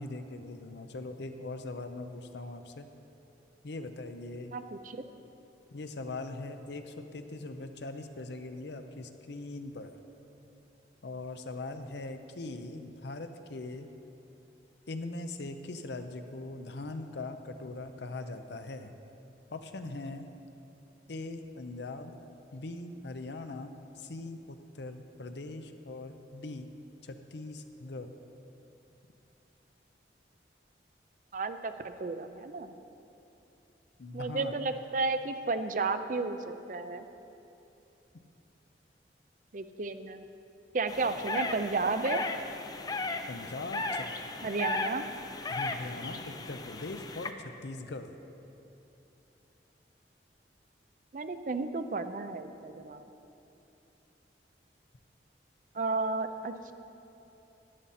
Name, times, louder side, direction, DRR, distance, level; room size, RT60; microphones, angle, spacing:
voice 1, 0.0-2.9 3.6-4.5 5.7-10.0 11.0-13.9 14.9-18.9 19.5-20.3 21.1-22.2 22.5-26.7 27.0-28.1 34.0-34.5 43.3-44.1 45.5-48.1, left 2 dB, 75° left, 8 dB, 0.6 m, -41 dB
voice 2, 4.5-5.1 31.3-31.7 32.0-32.7 34.1-37.0 39.5-40.2 40.7-42.2 44.4-45.0 51.1-53.1 55.7-56.7, right 3 dB, 45° right, 10 dB, 0.5 m, -32 dB
sound 1, 40.9-47.3, left 3 dB, 20° left, 0.4 m, -36 dB
11.0 x 11.0 x 4.2 m, 2.9 s
head